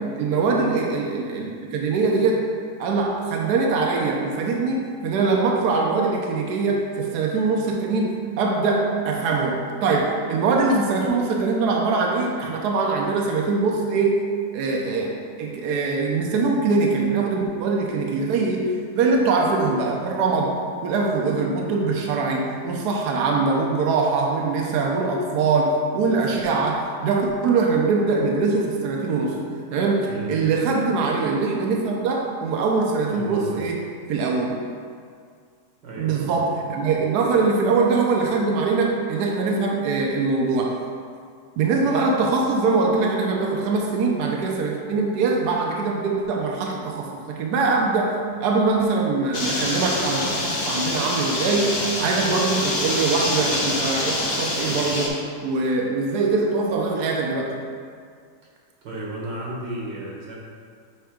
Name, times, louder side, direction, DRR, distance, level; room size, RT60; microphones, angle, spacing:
voice 1, 0.2-2.4 2.8-14.2 14.5-29.4 29.7-34.5 36.0-40.8 41.6-57.5, right 4 dB, 75° right, 0 dB, 1.2 m, -22 dB
voice 2, 33.1-33.6 35.8-36.3 58.8-60.4, right 1 dB, 90° right, -4 dB, 1.9 m, -33 dB
sound 1, 49.3-55.1, left 2 dB, 55° left, 1.6 m, -26 dB
7.2 x 3.3 x 4.9 m, 2.1 s
omnidirectional pair, 1.8 m